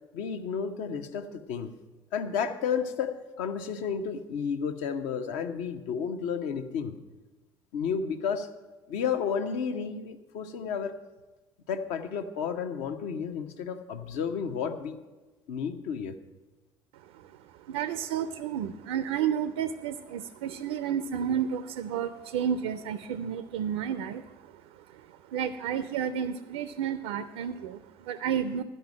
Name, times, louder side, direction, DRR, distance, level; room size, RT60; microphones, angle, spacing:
voice 1, 0.1-1.7 2.1-6.9 7.7-8.5 8.9-10.9 11.7-15.0 15.5-16.1, left 6 dB, 60° left, 7 dB, 0.8 m, -32 dB
voice 2, 17.7-24.5 24.9-28.6, right 8 dB, 65° right, 12 dB, 0.5 m, -31 dB
13.0 x 5.4 x 7.6 m, 1.2 s
figure-of-eight pair, 55°, 13 cm